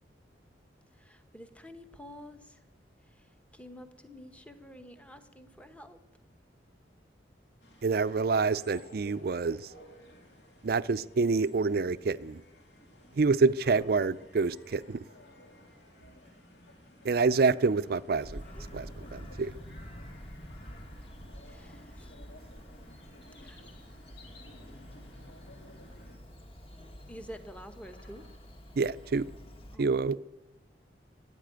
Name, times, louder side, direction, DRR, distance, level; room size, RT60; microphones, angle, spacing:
voice 1, 0.9-2.6 3.1-6.0 18.6-18.7 21.4-22.1 23.4-23.6 27.1-28.3 29.7-29.9, equal, 5° left, 1.0 m, -49 dB
sound 1, 7.6-26.2, equal, 65° left, 2.9 m, -55 dB
voice 2, 7.8-9.7 10.6-12.4 13.2-15.1 17.0-18.4 18.7-19.6 28.8-29.3 29.8-30.2, right 4 dB, 55° right, 0.4 m, -27 dB
Bird vocalization bird call bird song, 18.2-29.8, equal, 30° left, 1.6 m, -48 dB
15.0 x 9.1 x 9.2 m
head